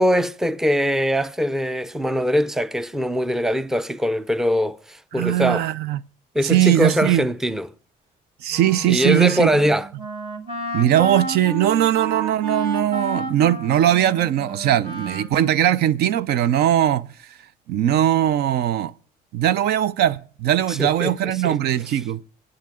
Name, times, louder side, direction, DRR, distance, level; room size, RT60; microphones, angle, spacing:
voice 1, 0.0-5.7 6.3-7.7 8.9-9.9 20.7-21.6, equal, 5° right, 0.5 m, -22 dB
voice 2, 5.1-6.0 6.4-7.2 8.4-9.5 10.7-17.1 17.7-18.9 19.3-22.2, right 11 dB, 75° right, 0.6 m, -20 dB
Wind instrument woodwind instrument, 8.5-15.8, right 3 dB, 30° right, 2.5 m, -31 dB
25.5 x 8.6 x 3.7 m
cardioid pair, 110°, 17 cm